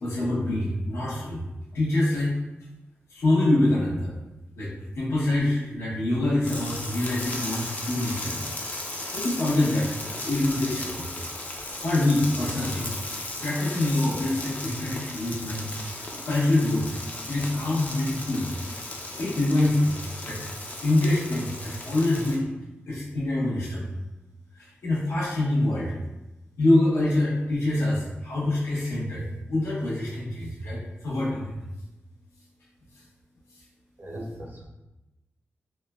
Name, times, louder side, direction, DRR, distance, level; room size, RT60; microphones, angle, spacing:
voice 1, 0.0-1.5 1.7-2.4 3.1-4.1 4.6-8.3 9.1-11.1 11.8-12.9 13.4-15.7 16.1-20.4 20.8-22.4 22.9-23.9 24.5-25.9 26.6-31.6 32.9-33.1 33.5-33.7 34.1-34.2, left 1 dB, 85° left, -8 dB, 0.8 m, -25 dB
sound 1, 6.4-22.4, left 2 dB, 35° left, 0.4 m, -36 dB
voice 2, 34.0-34.6, right 1 dB, 55° right, -3 dB, 0.6 m, -38 dB
3.1 x 2.1 x 2.3 m, 1.0 s
wide cardioid pair, 105°, 4 cm